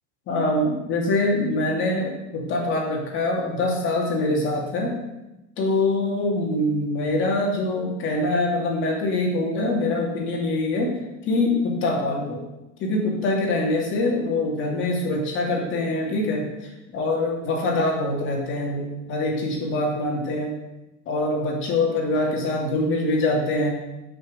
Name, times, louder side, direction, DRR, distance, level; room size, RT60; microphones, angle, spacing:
voice 1, 0.3-4.9 5.6-10.9 11.3-12.4 12.8-20.5 21.1-23.7, left 2 dB, 35° left, 0 dB, 2.7 m, -24 dB
12.0 x 6.3 x 7.9 m, 0.99 s
cardioid pair, 175°, 35 cm